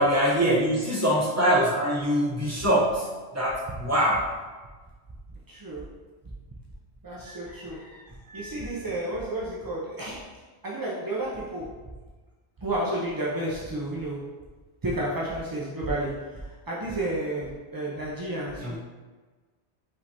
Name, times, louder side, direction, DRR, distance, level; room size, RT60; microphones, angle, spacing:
voice 1, 0.0-4.3 18.6-18.8, equal, 15° right, -6 dB, 0.9 m, -23 dB
voice 2, 5.5-5.9 7.0-10.3 10.6-11.8 12.6-14.2 14.8-18.8, right 1 dB, 35° right, -5 dB, 0.3 m, -31 dB
5.2 x 3.3 x 2.8 m, 1.3 s
omnidirectional pair, 1.2 m